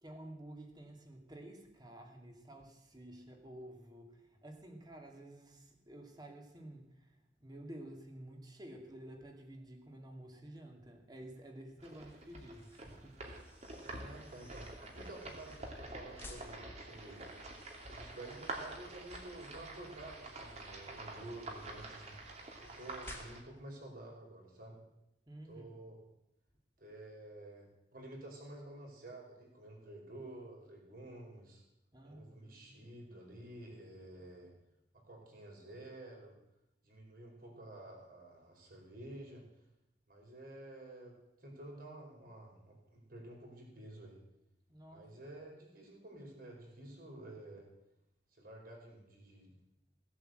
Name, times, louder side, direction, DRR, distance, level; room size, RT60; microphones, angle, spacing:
voice 1, 0.0-13.5 25.3-25.7 31.9-32.8 44.7-45.1, right 1 dB, 25° right, 2 dB, 2.3 m, -52 dB
sound 1, 11.8-23.4, right 2 dB, 40° right, 2.7 m, -47 dB
sound 2, 12.5-23.7, left 1 dB, 15° left, 2.0 m, -59 dB
voice 2, 13.8-17.2 17.8-22.2 22.6-24.8 25.4-26.0 26.8-31.6 32.0-34.5 34.9-36.3 36.8-39.4 40.1-44.2 44.9-47.7 48.3-49.5, right 1 dB, 55° right, 0 dB, 4.8 m, -51 dB
17.0 x 8.5 x 7.9 m, 0.88 s
head